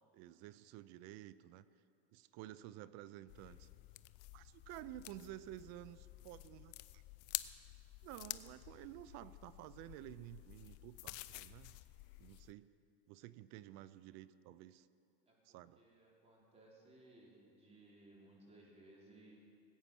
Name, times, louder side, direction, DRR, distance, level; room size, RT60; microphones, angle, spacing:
voice 1, 0.1-1.6 2.1-3.7 4.3-7.0 8.0-11.8 12.2-12.7 13.1-14.9 15.5-15.8, right 14 dB, 55° right, 16 dB, 0.6 m, -52 dB
sound 1, 3.3-12.5, left 18 dB, 45° left, 0.5 m, -50 dB
voice 2, 15.3-19.4, right 2 dB, 20° right, -3 dB, 3.8 m, -62 dB
19.0 x 8.7 x 6.1 m, 2.5 s
supercardioid pair, 125°, 32 cm